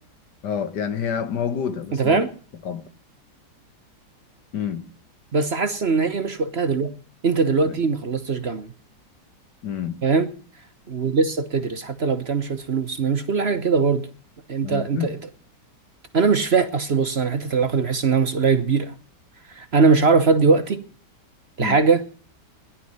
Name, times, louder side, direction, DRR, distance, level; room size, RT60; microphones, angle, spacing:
voice 1, 0.4-2.2 2.7-2.8 4.5-4.8 7.6-7.8 9.6-10.0 14.6-15.1 21.6-21.8, left 8 dB, 80° left, 1.9 m, -28 dB
voice 2, 1.9-2.3 5.3-6.9 7.2-8.7 10.0-10.3 10.9-14.0 14.5-15.2 16.1-18.9 19.6-20.8 21.6-22.0, right 4 dB, 45° right, 1.1 m, -21 dB
16.5 x 11.5 x 5.5 m
omnidirectional pair, 1.8 m